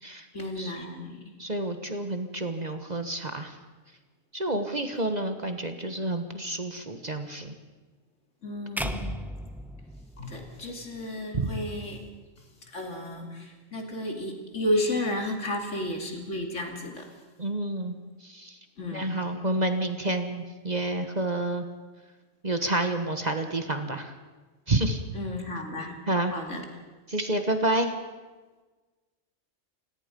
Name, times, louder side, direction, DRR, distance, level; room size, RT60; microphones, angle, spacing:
voice 1, 0.3-1.2 8.4-9.2 10.2-12.1 12.4-17.2 18.8-19.2 25.1-26.0 26.2-26.6, left 1 dB, 65° left, 3 dB, 3.1 m, -33 dB
voice 2, 1.4-3.6 4.3-7.5 11.3-11.5 17.4-18.6 18.9-21.6 22.4-24.1 24.7-25.0 26.1-26.3 27.1-27.9, right 2 dB, 35° right, 7 dB, 1.3 m, -29 dB
sound 1, 8.8-11.0, equal, ahead, 0.8 m, -36 dB
29.5 x 17.5 x 5.3 m, 1.3 s
omnidirectional pair, 1.4 m